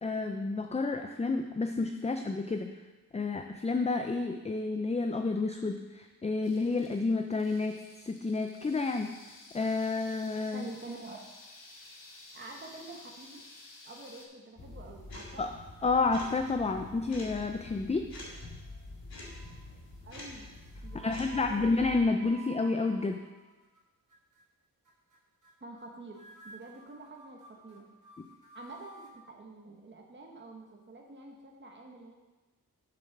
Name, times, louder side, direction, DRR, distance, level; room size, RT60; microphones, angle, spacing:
voice 1, 0.0-2.7 3.1-7.7 8.1-9.1 9.5-10.7 15.4-15.5 15.8-18.0 21.0-23.2, left 3 dB, 20° left, 5 dB, 0.4 m, -30 dB
sound 1, 6.4-14.2, left 2 dB, 55° left, 1.3 m, -53 dB
voice 2, 10.5-11.3 12.3-13.4 13.8-15.5 20.0-20.5 20.8-21.7 25.6-27.9 28.5-32.2, right 2 dB, 30° right, 1 dB, 1.0 m, -47 dB
sound 2, 14.6-22.0, left 2 dB, 70° left, 2.4 m, -46 dB
sound 3, 18.3-18.9 19.2-19.7 20.5-23.8 24.1-24.4 24.9-25.2 25.4-25.9 26.1-29.2, right 3 dB, 55° right, 1.7 m, -53 dB
7.2 x 6.8 x 5.9 m, 1.2 s
wide cardioid pair, 135°, 37 cm